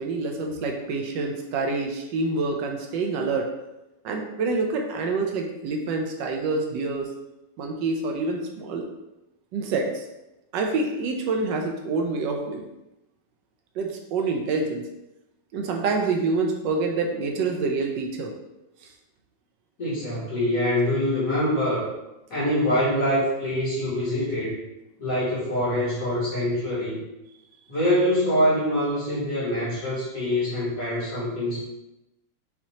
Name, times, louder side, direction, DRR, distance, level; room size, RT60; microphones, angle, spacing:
voice 1, 0.0-3.5 4.0-7.1 7.6-8.8 9.5-10.0 10.5-12.7 13.8-14.9 15.5-18.3, right 3 dB, 80° right, 2 dB, 1.3 m, -27 dB
voice 2, 19.8-21.9 22.3-24.6 25.0-27.0 27.7-31.6, left 1 dB, 50° left, -9 dB, 2.2 m, -24 dB
6.0 x 2.8 x 2.8 m, 0.95 s
omnidirectional pair, 2.0 m